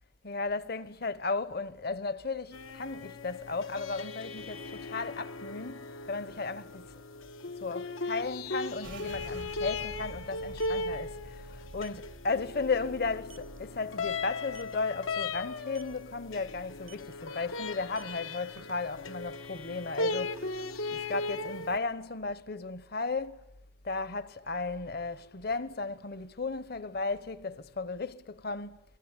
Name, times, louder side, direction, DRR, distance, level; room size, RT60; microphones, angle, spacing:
voice 1, 0.2-6.9 7.6-20.6 20.9-23.4 23.8-28.8, left 3 dB, 50° left, 1.0 m, -35 dB
sound 1, 2.5-21.8, left 3 dB, 80° left, 1.1 m, -38 dB
sound 2, 8.8-18.2 18.5-19.8 20.1-20.6 21.0-21.6, right 2 dB, 65° right, 0.9 m, -50 dB
sound 3, 10.4-10.8 11.8-12.0 12.4-12.6 13.0-13.1 13.3-13.6 14.4-14.8 15.7-16.0 16.8-17.1 17.8-19.1, right 8 dB, 80° right, 1.7 m, -54 dB
28.5 x 20.5 x 9.8 m
head